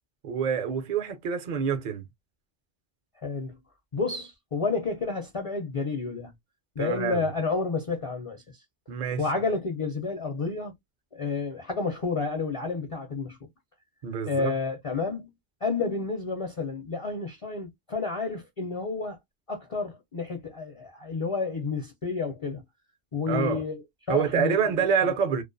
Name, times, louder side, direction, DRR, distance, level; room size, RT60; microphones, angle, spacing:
voice 1, 0.2-2.1 6.8-7.3 8.9-9.2 14.0-14.6 23.3-23.6 24.1-25.4, right 7 dB, 55° right, 0.6 m, -27 dB
voice 2, 3.2-3.6 3.9-6.3 6.8-8.4 9.2-10.7 11.1-13.4 14.3-15.3 15.6-19.2 19.5-22.6 23.1-23.8 24.1-24.8, left 4 dB, 40° left, 0.5 m, -30 dB
2.4 x 2.3 x 2.5 m
omnidirectional pair, 1.1 m